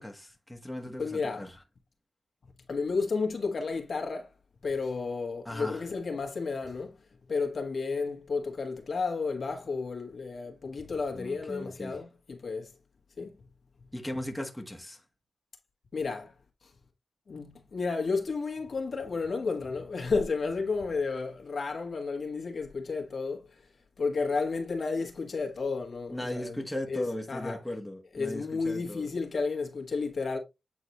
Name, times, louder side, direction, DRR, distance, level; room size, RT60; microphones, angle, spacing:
voice 1, 0.0-1.5 5.4-5.8 11.1-12.0 13.9-15.0 26.1-29.1, left 1 dB, 5° left, 1.4 m, -37 dB
voice 2, 1.0-1.5 2.7-4.3 4.6-6.9 7.3-12.7 13.2-13.3 15.9-16.3 17.3-23.4 24.0-26.6 26.9-27.6 28.1-30.4, left 4 dB, 65° left, 1.5 m, -32 dB
8.5 x 4.0 x 3.0 m
cardioid pair, 65°, 0 cm